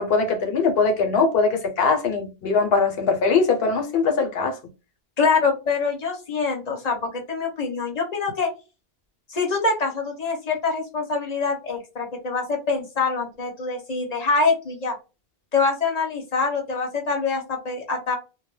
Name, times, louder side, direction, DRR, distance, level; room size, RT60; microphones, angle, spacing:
voice 1, 0.0-4.6, left 4 dB, 75° left, 0.9 m, -21 dB
voice 2, 5.2-8.5 9.3-15.0 15.5-18.2, left 4 dB, 45° left, 0.8 m, -25 dB
2.2 x 2.1 x 3.0 m
omnidirectional pair, 1.0 m